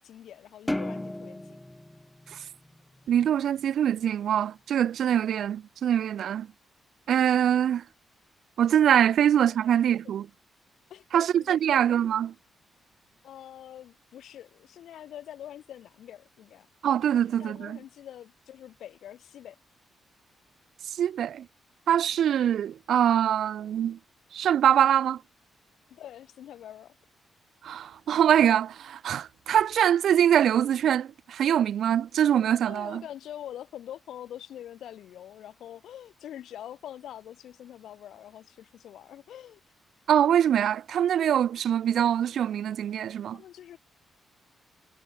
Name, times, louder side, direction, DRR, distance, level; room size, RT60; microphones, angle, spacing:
voice 1, 0.0-1.6 9.5-9.6 10.9-11.6 13.2-16.7 17.4-19.6 25.9-26.9 32.6-39.6 43.3-43.8, left 11 dB, 80° left, 3.2 m, -44 dB
sound 1, 0.7-3.2, left 1 dB, 5° left, 3.2 m, -35 dB
voice 2, 3.1-6.5 7.1-7.8 8.6-10.3 11.1-12.3 16.8-17.8 21.0-21.5 21.9-24.0 24.3-25.2 27.6-33.0 40.1-43.4, right 9 dB, 70° right, 0.9 m, -23 dB
cardioid pair, 145°, 0 cm